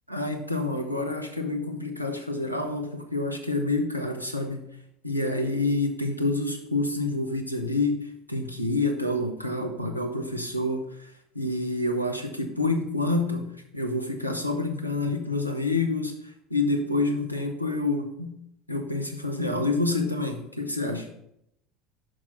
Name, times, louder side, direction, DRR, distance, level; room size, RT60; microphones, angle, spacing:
voice 1, 0.1-4.6 5.0-8.0 8.3-10.9 11.3-16.1 16.5-18.4 18.7-21.1, left 2 dB, 90° left, 5 dB, 0.7 m, -28 dB
6.3 x 5.9 x 4.3 m, 0.78 s
figure-of-eight pair, 70°, 0 cm